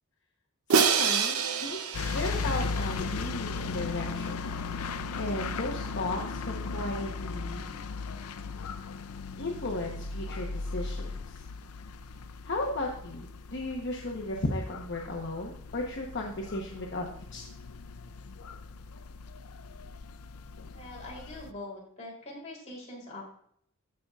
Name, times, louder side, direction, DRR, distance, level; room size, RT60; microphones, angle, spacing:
voice 1, 0.7-1.8 2.1-4.3 4.7-7.6 9.4-11.5 12.4-17.5, left 2 dB, 55° left, -1 dB, 1.0 m, -35 dB
Crash cymbal, 0.7-2.9, right 6 dB, 80° right, 0.7 m, -27 dB
sound 1, 1.9-21.5, left 4 dB, 85° left, 0.5 m, -37 dB
voice 2, 20.7-23.2, left 2 dB, 30° left, -3 dB, 3.3 m, -43 dB
15.5 x 5.4 x 2.4 m, 0.65 s
head